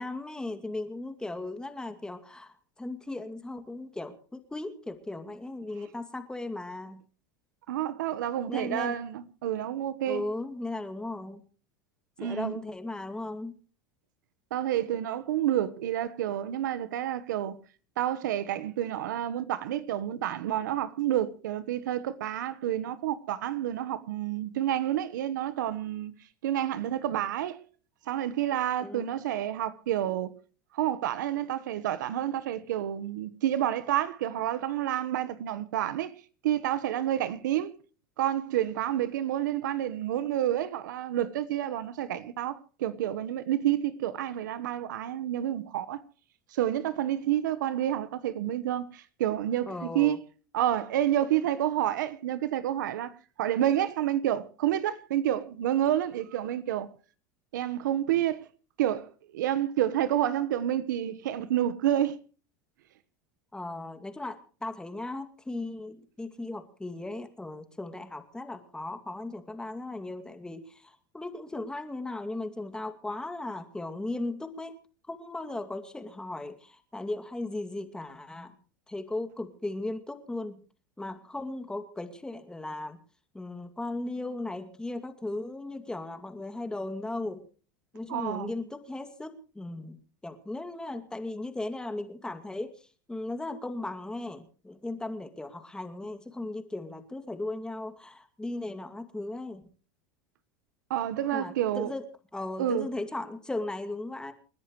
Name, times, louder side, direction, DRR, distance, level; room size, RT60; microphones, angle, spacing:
voice 1, 0.0-7.0 8.5-9.0 10.1-11.4 12.2-13.6 28.8-29.1 49.7-50.2 63.5-74.7 75.1-78.6 78.9-80.6 81.0-83.0 83.3-87.4 87.9-90.0 90.2-99.6 101.3-102.0 102.3-104.3, left 2 dB, 10° left, 2.3 m, -37 dB
voice 2, 7.7-10.2 12.2-12.6 14.5-17.6 18.0-26.1 26.4-27.6 28.1-30.3 30.7-36.1 36.4-37.7 38.2-46.0 46.5-50.2 50.5-53.1 53.4-56.9 57.5-58.5 58.8-62.2 88.1-88.5 100.9-101.9 102.6-102.9, right 12 dB, 85° right, 1.2 m, -29 dB
29.0 x 10.5 x 3.1 m
supercardioid pair, 110°, 10 cm